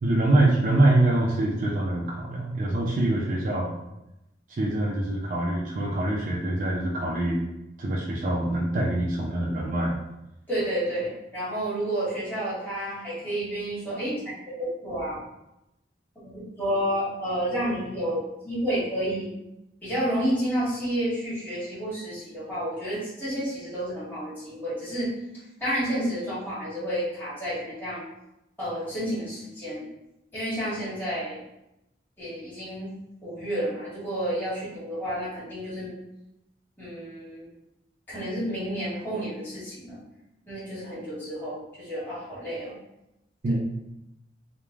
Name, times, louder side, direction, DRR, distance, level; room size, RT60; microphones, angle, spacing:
voice 1, 0.0-3.7 4.5-7.4 7.8-10.0 43.4-43.6, right 1 dB, 45° right, -4 dB, 0.4 m, -24 dB
voice 2, 10.5-15.2 16.2-19.3 19.8-25.1 25.6-28.1 28.6-29.8 30.3-31.4 32.2-32.9 33.2-35.9 36.8-37.5 38.1-40.0 40.5-42.7, equal, 10° left, -12 dB, 1.4 m, -30 dB
3.1 x 2.1 x 2.3 m, 0.89 s
head